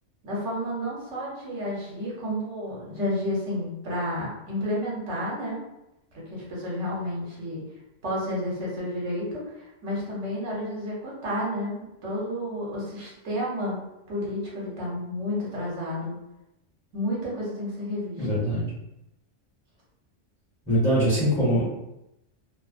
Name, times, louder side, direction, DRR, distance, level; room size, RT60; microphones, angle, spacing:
voice 1, 0.2-5.6 6.3-7.6 8.0-13.8 14.1-16.2 16.9-18.3, left 1 dB, 70° right, -5 dB, 1.1 m, -31 dB
voice 2, 18.2-18.7 20.7-21.9, equal, 5° left, -10 dB, 0.8 m, -23 dB
2.5 x 2.0 x 2.4 m, 0.89 s
omnidirectional pair, 1.3 m